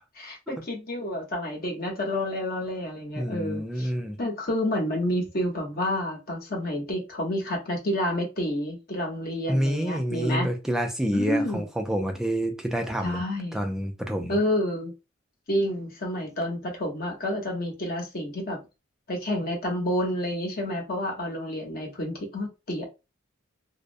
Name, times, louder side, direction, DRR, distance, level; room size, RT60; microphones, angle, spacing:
voice 1, 0.1-3.9 4.2-10.5 11.1-11.6 13.0-13.6 14.3-14.9 15.5-18.6 19.1-22.8, left 1 dB, 45° left, 0 dB, 0.8 m, -29 dB
voice 2, 3.2-4.2 9.5-13.2 13.5-14.4, equal, ahead, 3 dB, 0.4 m, -28 dB
2.4 x 2.0 x 2.5 m, 0.27 s
head